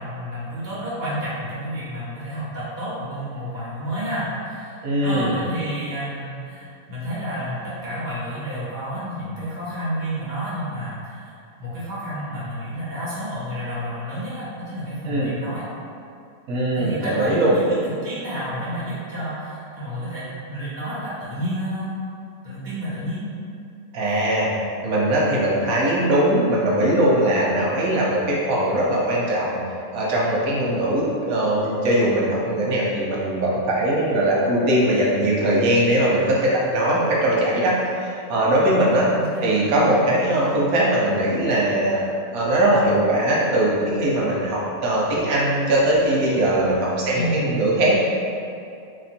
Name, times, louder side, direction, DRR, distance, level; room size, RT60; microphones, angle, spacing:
voice 1, 0.0-15.6 16.7-21.9 22.4-23.3 24.1-24.2 39.1-39.5 47.1-47.6, equal, 35° right, -10 dB, 1.4 m, -30 dB
voice 2, 4.8-5.3 15.1-15.3 16.5-17.6 23.9-24.5 24.8-29.6 29.9-39.1 39.4-42.0 42.3-48.0, right 1 dB, 90° right, -5 dB, 1.2 m, -20 dB
3.1 x 3.0 x 4.3 m, 2.5 s
omnidirectional pair, 1.5 m